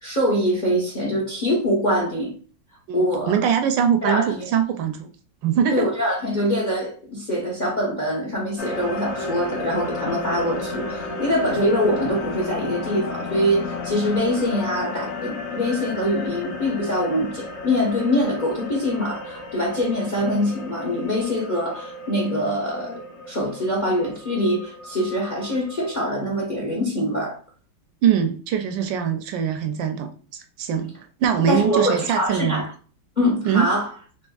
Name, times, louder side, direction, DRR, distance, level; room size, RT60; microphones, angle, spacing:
voice 1, 0.0-2.3 2.9-3.3 4.0-4.3 5.7-23.0 23.3-27.4 31.5-32.7 33.2-33.8, equal, 35° left, 0.8 m, -24 dB
voice 2, 2.9-5.1 5.4-5.9 28.0-32.6 33.4-33.7, right 8 dB, 80° right, 1.2 m, -22 dB
sound 1, 8.6-26.0, left 3 dB, 90° left, 0.6 m, -33 dB
4.3 x 2.9 x 2.3 m
omnidirectional pair, 2.1 m